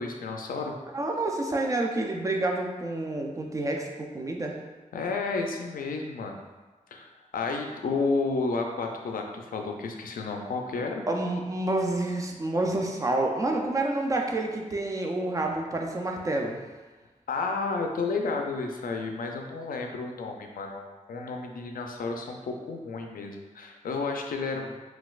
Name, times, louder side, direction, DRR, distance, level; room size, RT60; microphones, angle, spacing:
voice 1, 0.0-0.8 4.9-6.4 6.9-11.1 17.3-24.8, left 3 dB, 90° left, 3 dB, 0.4 m, -31 dB
voice 2, 0.9-4.5 11.1-16.6, right 2 dB, 25° right, 1 dB, 0.4 m, -28 dB
4.0 x 2.3 x 2.4 m, 1.3 s
wide cardioid pair, 135°, 14 cm